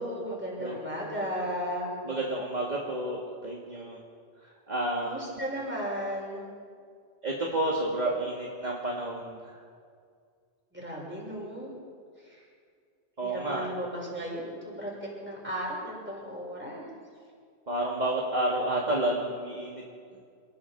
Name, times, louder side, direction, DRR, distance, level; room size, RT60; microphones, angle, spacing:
voice 1, 0.0-1.9 5.0-6.4 10.7-11.7 12.2-12.4 13.2-16.9, equal, 10° right, -4 dB, 6.7 m, -35 dB
voice 2, 2.0-4.0 4.4-5.4 7.2-9.6 13.2-13.7 17.7-19.8, right 1 dB, 35° right, -3 dB, 2.4 m, -30 dB
28.0 x 20.5 x 4.8 m, 2.2 s
omnidirectional pair, 1.2 m